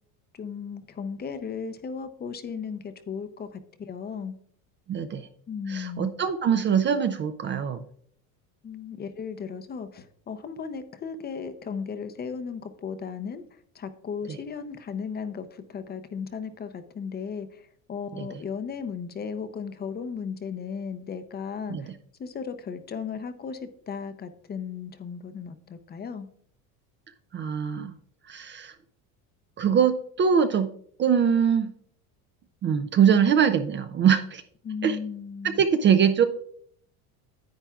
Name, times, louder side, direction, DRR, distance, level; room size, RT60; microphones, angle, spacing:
voice 1, 0.3-3.6 3.9-4.3 5.5-6.1 8.6-21.9 22.2-26.3 34.6-35.7, left 6 dB, 25° left, 10 dB, 0.6 m, -36 dB
voice 2, 4.9-5.3 5.7-7.8 18.1-18.3 21.7-21.9 27.3-27.9 28.3-28.7 29.6-30.7 31.0-31.7 32.6-34.4 34.8-35.0 35.4-36.2, right 7 dB, 30° right, 10 dB, 0.4 m, -23 dB
10.0 x 8.7 x 2.3 m, 0.62 s
supercardioid pair, 125°, 41 cm